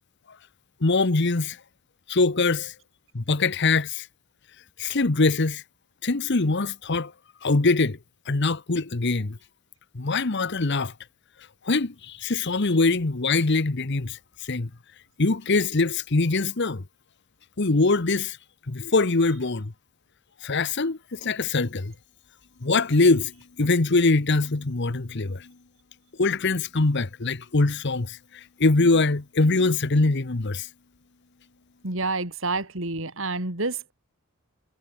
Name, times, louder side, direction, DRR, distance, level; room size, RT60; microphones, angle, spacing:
voice 1, 0.8-1.6 2.1-2.7 3.1-4.1 4.8-5.6 6.0-7.1 7.4-8.0 8.2-9.4 9.9-10.9 11.6-14.7 15.2-16.8 17.6-18.4 18.7-19.7 20.4-21.9 22.6-25.5 26.2-30.7, left 3 dB, 55° left, 1.1 m, -23 dB
voice 2, 31.8-33.9, right 3 dB, 65° right, 3.9 m, -28 dB
head